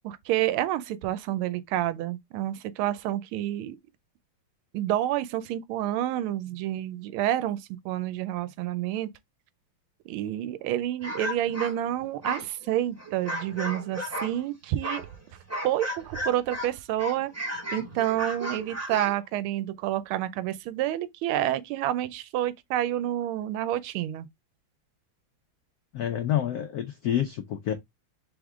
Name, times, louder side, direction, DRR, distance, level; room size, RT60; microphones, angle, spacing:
voice 1, 0.0-3.8 4.7-9.1 10.1-15.0 15.6-17.3 17.7-24.3, right 13 dB, 90° right, 1.4 m, -29 dB
sound 1, 11.0-14.4 14.8-16.7 17.0-19.2, equal, 10° right, 0.8 m, -34 dB
voice 2, 25.9-27.7, left 10 dB, 85° left, 0.8 m, -28 dB
3.6 x 3.6 x 3.5 m
omnidirectional pair, 2.3 m